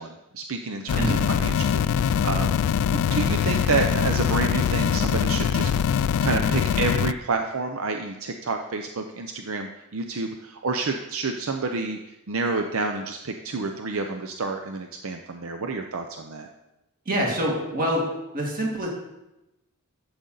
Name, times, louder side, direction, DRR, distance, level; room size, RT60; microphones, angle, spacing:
voice 1, 0.0-16.5, right 3 dB, 65° right, 5 dB, 0.6 m, -29 dB
sound 1, 0.9-7.1, left 8 dB, 80° left, 0.3 m, -23 dB
voice 2, 17.1-18.1 18.3-18.9, equal, 40° right, -2 dB, 2.2 m, -25 dB
12.5 x 7.8 x 3.9 m, 0.96 s
head